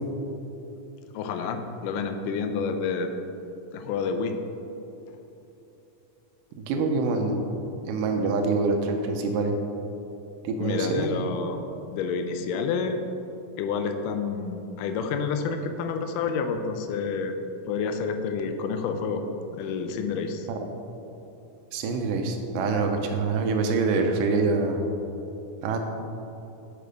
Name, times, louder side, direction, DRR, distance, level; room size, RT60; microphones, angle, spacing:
voice 1, 1.1-3.1 3.7-4.3 10.6-11.6 11.9-13.0 13.6-17.3 17.7-19.2 19.6-20.5, left 5 dB, 85° left, 7 dB, 2.2 m, -29 dB
voice 2, 6.6-7.4 7.9-9.5 10.4-11.1 20.5-20.6 21.7-24.8 25.6-25.8, right 3 dB, 85° right, 4 dB, 2.4 m, -25 dB
6.7 x 6.4 x 5.1 m, 2.9 s
omnidirectional pair, 3.7 m